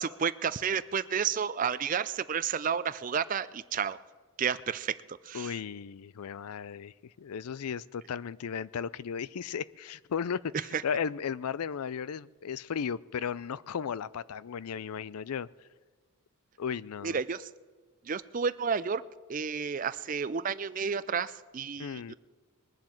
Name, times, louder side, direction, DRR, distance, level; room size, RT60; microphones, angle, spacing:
voice 1, 0.0-4.0 4.4-5.5 10.7-10.8 17.0-17.5 18.1-19.0 19.3-22.1, right 6 dB, 35° right, 16 dB, 0.4 m, -31 dB
voice 2, 5.3-15.5 16.6-17.2 21.8-22.1, left 7 dB, 85° left, 19 dB, 0.4 m, -35 dB
21.0 x 7.3 x 7.7 m, 1.4 s
head